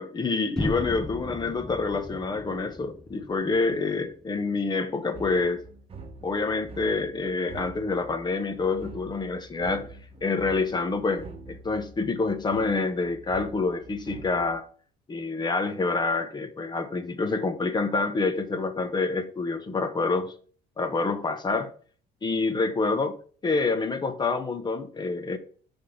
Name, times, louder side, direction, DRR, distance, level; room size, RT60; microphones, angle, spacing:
voice 1, 0.0-5.6 6.2-9.9 10.2-14.6 15.1-20.3 20.8-21.7 22.2-23.2 23.4-25.4, left 3 dB, 25° left, 0.9 m, -27 dB
sound 1, 0.6-4.5, left 1 dB, 5° left, 0.3 m, -36 dB
sound 2, 5.1-14.6, right 3 dB, 35° right, 1.1 m, -45 dB
5.9 x 3.5 x 5.7 m
cardioid pair, 110°, 17 cm